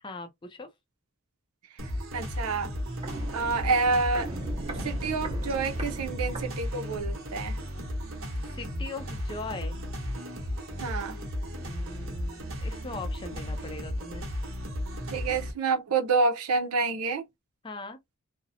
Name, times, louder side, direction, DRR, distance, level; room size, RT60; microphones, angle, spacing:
voice 1, 0.0-0.7 8.5-9.8 11.6-14.3 17.6-18.0, left 3 dB, 20° left, 0.4 m, -40 dB
sound 1, 1.8-15.5, equal, 60° right, 0.9 m, -35 dB
voice 2, 1.8-2.7 3.3-4.3 4.8-7.6 10.8-11.2 15.1-17.2, right 4 dB, 90° right, 0.6 m, -28 dB
Walk footsteps, 2.7-7.1 7.4-7.5, right 1 dB, 25° right, 0.9 m, -39 dB
2.7 x 2.0 x 2.6 m
head